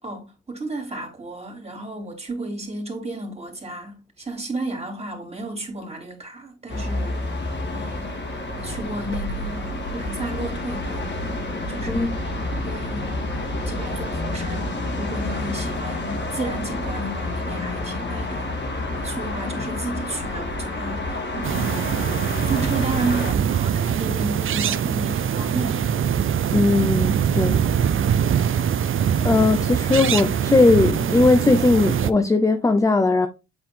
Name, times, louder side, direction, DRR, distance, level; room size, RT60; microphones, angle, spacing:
voice 1, 0.0-7.5 7.7-11.0 11.7-12.2 12.5-18.5 18.9-21.8 22.4-25.9, right 2 dB, 20° right, 3.2 m, -33 dB
sound 1, 6.7-23.3, left 2 dB, 40° left, 2.2 m, -29 dB
sound 2, 21.4-32.1, right 8 dB, 45° right, 0.6 m, -23 dB
voice 2, 26.5-27.6 29.2-33.3, left 3 dB, 10° left, 0.6 m, -19 dB
8.5 x 4.4 x 3.7 m
cardioid pair, 90°, 30 cm